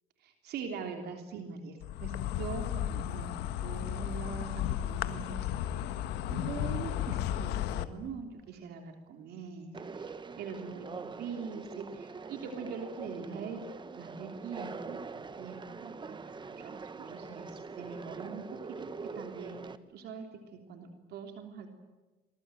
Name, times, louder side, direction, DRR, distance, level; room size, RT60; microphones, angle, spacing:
voice 1, 0.2-3.3 3.6-5.8 6.3-21.7, right 5 dB, 75° right, 5 dB, 3.3 m, -43 dB
Insect, 1.8-7.8, left 11 dB, 85° left, 1.5 m, -34 dB
Conversation, 9.7-19.8, right 4 dB, 25° right, 1.5 m, -44 dB
27.5 x 21.0 x 9.2 m, 1.2 s
cardioid pair, 110°, 17 cm